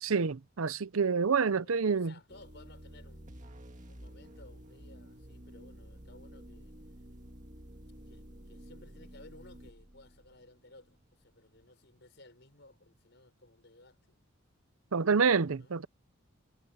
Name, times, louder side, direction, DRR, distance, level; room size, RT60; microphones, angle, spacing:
voice 1, 0.0-2.1 14.9-15.9, right 5 dB, 85° right, 0.7 m, -27 dB
voice 2, 1.2-3.4 3.9-6.8 8.1-14.2 15.6-15.7, left 2 dB, 55° left, 5.8 m, -58 dB
sound 1, 2.3-11.0, equal, 40° right, 2.0 m, -51 dB
head